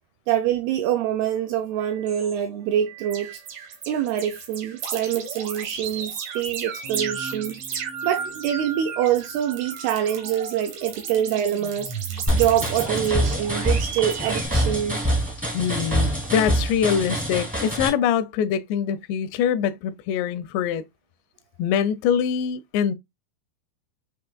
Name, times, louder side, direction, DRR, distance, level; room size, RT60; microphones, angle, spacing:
voice 1, 0.3-3.4 3.9-15.0, right 10 dB, 85° right, 2.2 m, -25 dB
sound 1, 1.2-1.3 1.8-2.3 2.9-14.5, right 6 dB, 70° right, 1.8 m, -34 dB
sound 2, 12.2-17.1, left 1 dB, 60° left, 0.5 m, -43 dB
sound 3, 12.3-17.9, equal, 10° right, 0.4 m, -25 dB
voice 2, 15.5-20.8 21.6-23.0, left 8 dB, 85° left, 2.7 m, -24 dB
6.7 x 2.9 x 2.3 m
omnidirectional pair, 4.9 m